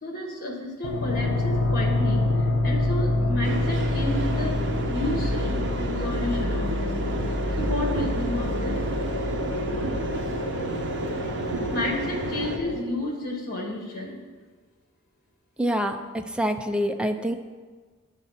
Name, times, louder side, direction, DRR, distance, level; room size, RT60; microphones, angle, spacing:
voice 1, 0.0-4.6 4.9-7.2 7.6-8.8 11.7-14.2, left 1 dB, 45° left, 1 dB, 1.7 m, -31 dB
sound 1, 0.8-12.8, left 2 dB, 70° left, 0.9 m, -27 dB
sound 2, 3.4-12.6, right 2 dB, 55° right, 1.0 m, -31 dB
voice 2, 15.6-17.3, equal, 5° right, 5 dB, 0.4 m, -26 dB
10.0 x 4.1 x 7.2 m, 1.4 s
head